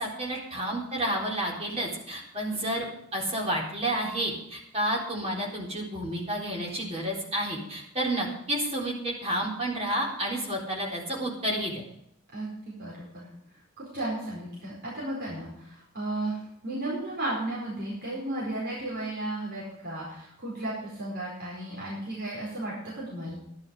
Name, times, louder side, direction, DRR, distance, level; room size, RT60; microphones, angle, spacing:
voice 1, 0.0-2.9 3.1-11.8, right 1 dB, 30° right, -2 dB, 3.8 m, -30 dB
voice 2, 12.3-13.3 13.8-23.3, right 1 dB, 55° right, -6 dB, 4.7 m, -34 dB
12.0 x 11.5 x 5.3 m, 0.76 s
head